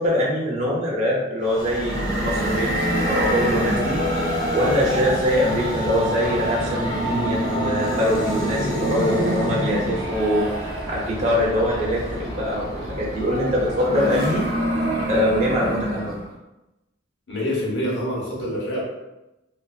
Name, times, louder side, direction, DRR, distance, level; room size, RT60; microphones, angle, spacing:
voice 1, 0.0-4.3 4.5-10.5 10.9-14.4 15.1-16.1, equal, 35° right, -4 dB, 0.5 m, -23 dB
Train, 1.4-14.9, equal, 20° left, 0.5 m, -32 dB
sound 1, 1.7-16.3, equal, 90° right, 0.7 m, -27 dB
voice 2, 17.3-18.9, equal, 65° left, -5 dB, 0.9 m, -26 dB
2.6 x 2.5 x 2.3 m, 0.96 s
head